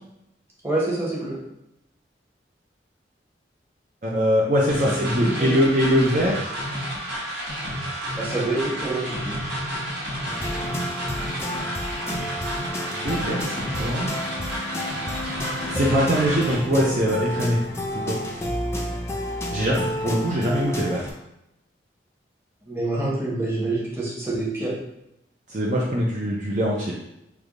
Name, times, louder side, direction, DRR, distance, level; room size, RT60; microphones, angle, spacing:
voice 1, 0.6-1.3 4.8-5.7 8.2-9.3 22.7-24.7, right 2 dB, 15° right, -6 dB, 0.9 m, -27 dB
voice 2, 4.0-6.5 13.0-14.1 15.7-17.6 17.9-18.2 19.5-21.1 25.5-26.9, equal, 45° right, -4 dB, 0.5 m, -22 dB
sound 1, 4.7-16.5, equal, 75° right, 1.3 m, -31 dB
sound 2, 10.3-21.1, left 1 dB, 15° left, 0.4 m, -31 dB
3.3 x 2.2 x 3.6 m, 0.84 s
head